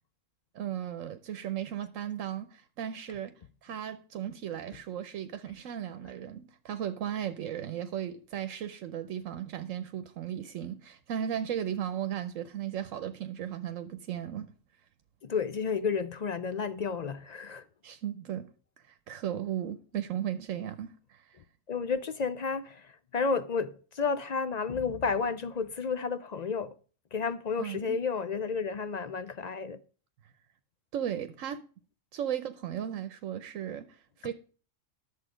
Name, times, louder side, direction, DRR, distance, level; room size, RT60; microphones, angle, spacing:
voice 1, 0.5-3.3 3.6-14.5 17.8-18.5 18.9-21.4 27.6-28.0 30.9-31.7 32.1-34.3, right 10 dB, 80° right, 1.1 m, -36 dB
voice 2, 15.2-17.6 21.7-26.8 27.1-29.8, left 5 dB, 55° left, 0.4 m, -31 dB
11.0 x 7.2 x 5.0 m
omnidirectional pair, 1.3 m